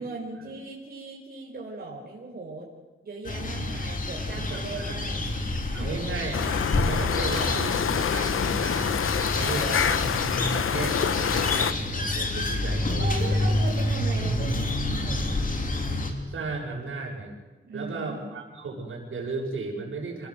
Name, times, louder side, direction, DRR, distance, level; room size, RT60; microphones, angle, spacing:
voice 1, 0.0-2.7 3.0-6.1 9.3-9.9 13.0-15.4 17.6-18.2, right 2 dB, 45° right, -3 dB, 4.9 m, -38 dB
sound 1, 3.2-16.1, left 1 dB, 40° left, 3.4 m, -28 dB
voice 2, 4.4-5.0 5.7-6.5 6.8-9.0 9.3-13.3 16.3-17.3 17.7-20.3, right 3 dB, 75° right, 0 dB, 7.1 m, -35 dB
sound 2, 6.3-11.7, left 8 dB, 80° left, 1.0 m, -27 dB
27.5 x 20.5 x 8.1 m, 1.2 s
wide cardioid pair, 180°, 21 cm